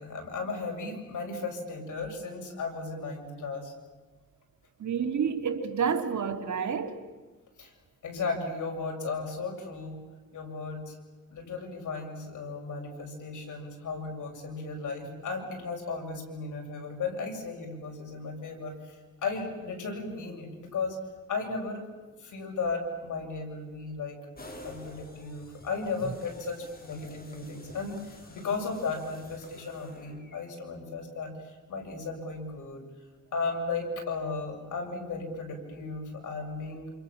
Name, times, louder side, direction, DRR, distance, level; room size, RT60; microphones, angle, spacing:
voice 1, 0.0-3.7 7.6-7.7 8.0-10.0 10.3-11.0 11.3-21.0 21.3-21.8 22.2-24.2 24.6-32.8 33.3-36.9, left 4 dB, 85° left, 7.3 m, -35 dB
voice 2, 4.8-7.0, right 6 dB, 70° right, 3.1 m, -29 dB
sound 1, 24.4-30.4, left 1 dB, 30° left, 6.2 m, -50 dB
28.5 x 28.0 x 7.4 m
cardioid pair, 90°, 30 cm